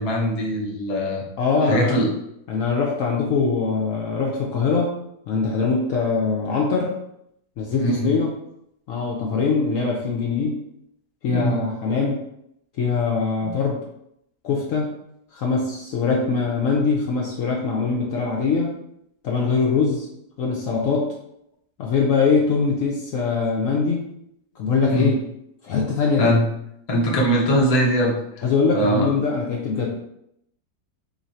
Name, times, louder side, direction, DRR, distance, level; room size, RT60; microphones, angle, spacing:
voice 1, 0.0-1.2 1.6-2.1 7.8-8.1 11.3-11.6 13.4-13.5 24.9-25.1 26.2-26.5 26.9-28.2 28.7-29.1, equal, 40° left, -3 dB, 0.5 m, -21 dB
voice 2, 1.4-2.0 2.5-5.0 5.3-6.9 7.6-8.3 8.9-10.6 11.2-12.2 12.8-13.8 14.4-14.9 15.3-18.8 19.2-20.1 20.4-21.1 21.8-24.1 24.6-25.2 25.6-26.3 28.4-29.9, left 4 dB, 65° left, -2 dB, 0.8 m, -22 dB
3.1 x 2.6 x 4.2 m, 0.77 s
omnidirectional pair, 1.8 m